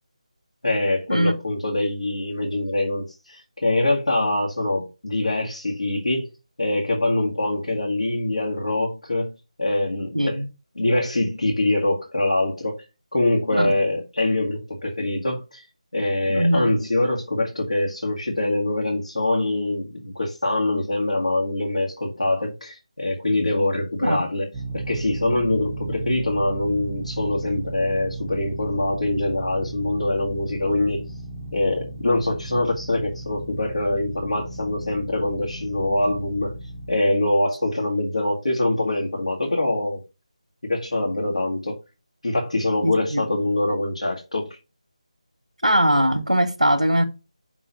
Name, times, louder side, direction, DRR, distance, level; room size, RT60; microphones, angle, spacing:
voice 1, 0.6-6.3 6.6-9.3 9.6-10.4 10.8-12.8 13.1-15.7 15.9-24.5 24.7-31.1 31.5-36.5 36.9-40.0 40.6-41.8 42.2-44.6, left 2 dB, 70° left, 1.9 m, -24 dB
voice 2, 10.1-10.5 13.5-13.7 16.3-16.7 24.0-24.2 42.8-43.3 45.6-47.0, equal, 90° right, 1.1 m, -21 dB
sound 1, 24.5-37.0, right 2 dB, 15° right, 0.6 m, -35 dB
5.9 x 3.8 x 5.3 m
figure-of-eight pair, 160°, 4 cm